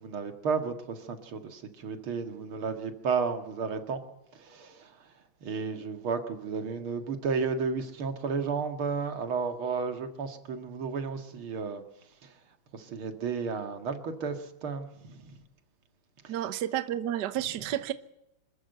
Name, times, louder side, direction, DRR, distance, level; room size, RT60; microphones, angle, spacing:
voice 1, 0.0-4.0 4.4-4.9 5.4-11.8 12.7-15.4 16.2-16.3, right 5 dB, 90° right, 7 dB, 2.8 m, -33 dB
voice 2, 16.3-17.9, right 12 dB, 60° right, 12 dB, 1.4 m, -31 dB
26.0 x 14.0 x 8.0 m, 0.84 s
omnidirectional pair, 2.2 m